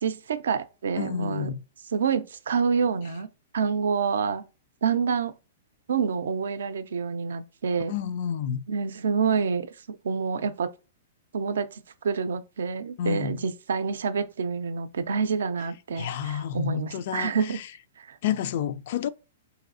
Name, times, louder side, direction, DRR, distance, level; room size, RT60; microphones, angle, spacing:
voice 1, 0.0-1.5 1.9-3.3 3.5-4.4 4.8-5.3 5.9-7.9 8.7-10.7 11.3-17.6 18.0-18.2, right 5 dB, 80° right, 0.4 m, -27 dB
voice 2, 1.0-1.6 7.9-8.6 13.0-13.4 16.0-17.7 18.2-19.1, left 9 dB, 55° left, 0.3 m, -30 dB
4.0 x 2.7 x 2.5 m
hypercardioid pair, 140°, 0 cm